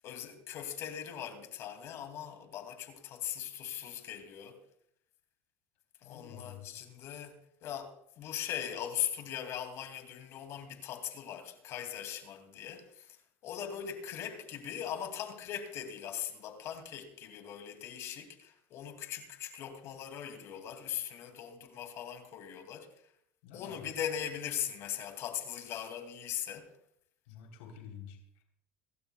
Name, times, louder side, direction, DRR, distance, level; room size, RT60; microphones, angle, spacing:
voice 1, 0.0-4.6 6.0-13.2 13.4-22.9 23.5-26.7, left 9 dB, 55° left, 2.4 m, -40 dB
voice 2, 6.0-6.7 23.4-23.9 27.2-28.4, left 8 dB, 80° left, 3.4 m, -49 dB
26.0 x 12.5 x 2.3 m
supercardioid pair, 100°, 6 cm